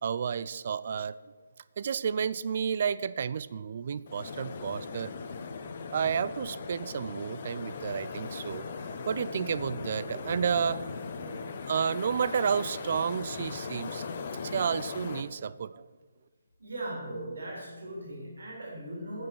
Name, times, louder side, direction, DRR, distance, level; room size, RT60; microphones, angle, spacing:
voice 1, 0.0-1.2 1.8-5.1 5.9-8.7 9.1-14.0 14.4-15.8, right 7 dB, 50° right, 17 dB, 0.4 m, -31 dB
sound 1, 4.1-15.2, left 5 dB, 45° left, 0.9 m, -39 dB
voice 2, 16.6-19.3, right 1 dB, 80° right, -2 dB, 3.9 m, -39 dB
9.2 x 7.9 x 6.3 m, 1.4 s
hypercardioid pair, 160°, 0 cm